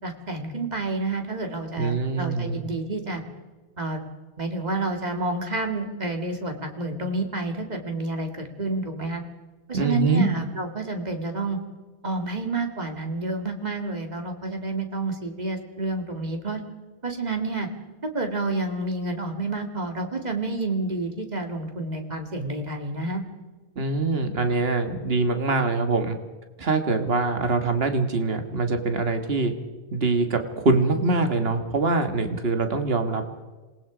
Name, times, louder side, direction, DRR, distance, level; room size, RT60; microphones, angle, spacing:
voice 1, 0.0-3.2 3.8-4.0 4.4-8.3 8.6-9.2 9.7-11.6 12.0-16.6 17.0-17.7 18.1-23.2, right 2 dB, 40° right, 4 dB, 2.3 m, -29 dB
voice 2, 1.8-2.6 9.7-10.3 23.8-26.2 26.6-29.5 29.9-33.2, right 3 dB, 60° right, 7 dB, 1.9 m, -24 dB
27.0 x 19.5 x 5.0 m, 1.2 s
omnidirectional pair, 1.1 m